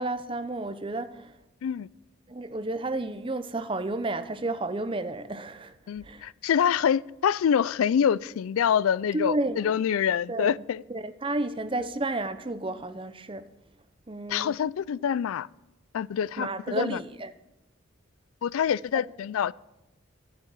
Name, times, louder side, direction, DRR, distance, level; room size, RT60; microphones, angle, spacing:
voice 1, 0.0-1.4 2.3-5.7 6.0-6.3 9.1-9.7 10.3-10.5 10.9-13.5 14.1-14.6 16.4-17.3, right 2 dB, 25° right, 0.6 m, -31 dB
voice 2, 5.9-10.8 14.3-15.5 15.9-17.0 18.4-19.5, left 8 dB, 85° left, 0.3 m, -26 dB
12.0 x 7.6 x 8.8 m
head